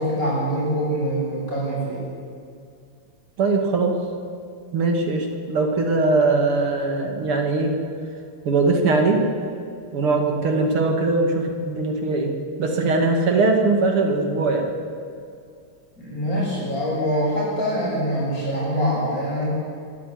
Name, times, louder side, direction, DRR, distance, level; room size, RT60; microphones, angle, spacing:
voice 1, 0.0-2.0 16.0-19.5, equal, 40° left, -5 dB, 8.4 m, -24 dB
voice 2, 3.4-4.0 4.7-7.8 8.4-9.2 9.9-12.3 12.6-14.7, right 3 dB, 75° right, 3 dB, 3.4 m, -21 dB
23.0 x 13.5 x 9.5 m, 2.4 s
omnidirectional pair, 2.4 m